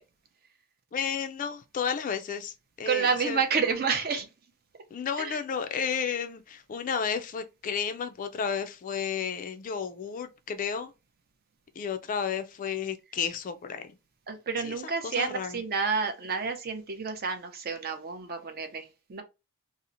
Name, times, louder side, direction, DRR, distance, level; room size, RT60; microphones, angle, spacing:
voice 1, 0.9-3.4 4.9-10.9 11.8-13.8 14.6-14.8 15.0-15.6, left 7 dB, 40° left, 0.3 m, -32 dB
voice 2, 2.9-4.3 5.2-5.4 14.3-19.2, right 5 dB, 45° right, 0.5 m, -29 dB
2.8 x 2.0 x 2.5 m
head